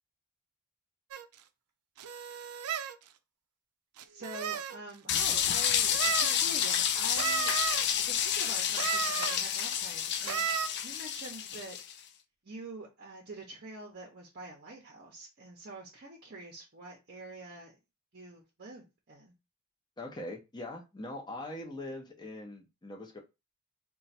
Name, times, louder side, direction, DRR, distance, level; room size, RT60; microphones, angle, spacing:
sound 1, 1.1-1.3 2.0-3.0 4.0-4.8 5.9-6.4 7.1-7.8 8.7-9.4 10.2-10.7, right 8 dB, 90° right, 0.4 m, -33 dB
voice 1, 4.1-7.5 8.0-10.5 10.8-12.1 12.4-17.8 18.1-19.3, right 2 dB, 45° right, 0.7 m, -46 dB
sound 2, 5.1-11.9, left 9 dB, 50° left, 0.4 m, -30 dB
voice 2, 20.0-23.2, left 1 dB, 20° left, 0.7 m, -42 dB
3.1 x 2.3 x 4.1 m
head